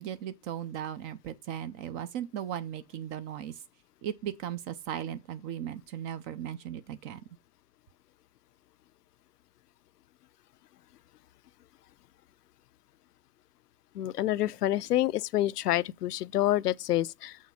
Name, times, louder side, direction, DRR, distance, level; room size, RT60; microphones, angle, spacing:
voice 1, 0.0-3.6 4.0-7.2, right 10 dB, 20° right, 0.4 m, -37 dB
voice 2, 13.9-17.4, left 13 dB, 70° left, 0.6 m, -28 dB
7.2 x 6.4 x 5.5 m
figure-of-eight pair, 100°, 50 cm